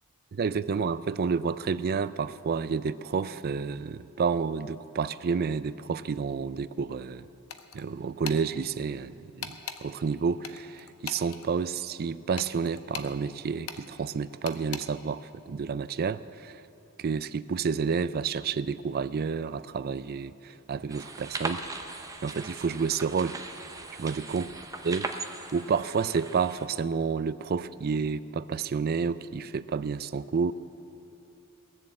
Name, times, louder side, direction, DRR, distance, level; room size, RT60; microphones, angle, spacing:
voice 1, 0.3-7.3 7.7-16.6 17.0-21.9 22.2-23.4 24.0-24.5 24.8-25.1 25.5-30.5, right 5 dB, 45° right, 15 dB, 0.4 m, -30 dB
sound 1, 7.5-7.9 8.2-8.4 9.4-9.8 10.4-11.5 12.4-13.1 13.7-13.8 14.5-14.8, left 8 dB, 70° left, 0.8 m, -38 dB
sound 2, 20.9-26.7, right 3 dB, 15° right, 0.7 m, -39 dB
20.0 x 7.3 x 7.6 m, 2.8 s
head